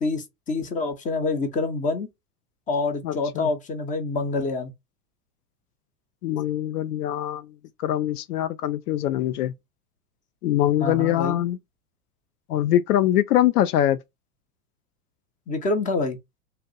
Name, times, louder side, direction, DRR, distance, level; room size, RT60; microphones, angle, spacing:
voice 1, 0.0-2.1 2.7-4.7 10.8-11.4 15.5-16.2, left 3 dB, 15° left, 0.7 m, -26 dB
voice 2, 3.0-3.5 6.2-7.5 7.8-9.5 10.4-11.6 12.5-14.0, left 12 dB, 70° left, 0.5 m, -23 dB
2.6 x 2.1 x 3.9 m
hypercardioid pair, 110°, 47 cm